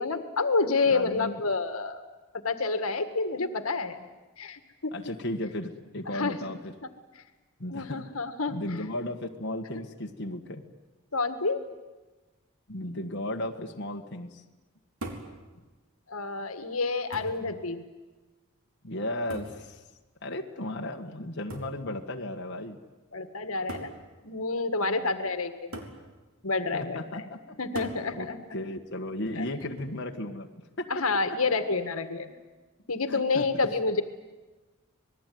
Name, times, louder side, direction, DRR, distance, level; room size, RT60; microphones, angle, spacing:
voice 1, 0.0-2.0 2.4-4.0 4.4-4.9 6.1-6.5 7.7-8.6 11.1-11.6 16.1-17.8 23.1-23.9 24.2-25.7 26.4-27.0 27.6-28.4 29.4-29.5 30.9-32.4 32.9-34.0, left 3 dB, 80° left, 9 dB, 1.8 m, -28 dB
voice 2, 0.9-1.4 4.9-6.7 7.6-8.1 8.5-10.6 12.7-14.4 18.8-19.8 20.2-22.8 24.8-25.2 26.7-27.6 28.1-28.3 28.5-30.5 30.8-31.5 33.1-33.5, left 1 dB, 55° left, 2 dB, 1.7 m, -35 dB
sound 1, 15.0-15.4 16.4-16.5 17.1-17.5 19.3-19.7 21.5-21.8 22.8-22.9 23.7-24.0 25.7-26.0 27.7-28.1 29.6-30.0, right 1 dB, 80° right, 3.9 m, -39 dB
27.0 x 20.5 x 9.4 m, 1.2 s
head